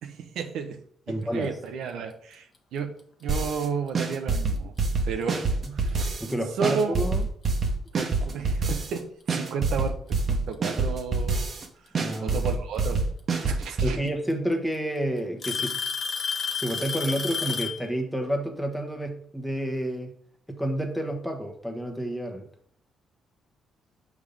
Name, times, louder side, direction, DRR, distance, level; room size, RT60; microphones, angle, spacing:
voice 1, 0.0-0.8 1.1-4.7 5.0-5.5 5.7-6.2 6.6-6.9 7.9-11.4 12.2-13.0 13.4-14.0, right 6 dB, 80° right, 6 dB, 0.8 m, -32 dB
voice 2, 1.1-1.5 6.2-7.2 11.9-12.4 13.8-15.8 16.5-20.1 20.5-22.5, right 1 dB, ahead, 2 dB, 1.1 m, -29 dB
sound 1, 3.3-3.7 3.9-6.3 6.6-9.0 9.3-11.6 11.9-13.9, right 3 dB, 45° right, 1.0 m, -26 dB
Alarm / Tick-tock, 3.9-4.1 5.0-5.1 5.9-6.0 7.7-7.8 9.0-9.1 10.3-10.8 12.5-12.6 13.9-14.0 14.3-14.8 15.4-17.9, left 6 dB, 45° left, 1.0 m, -30 dB
5.2 x 3.6 x 5.2 m, 0.64 s
cardioid pair, 90°, 0 cm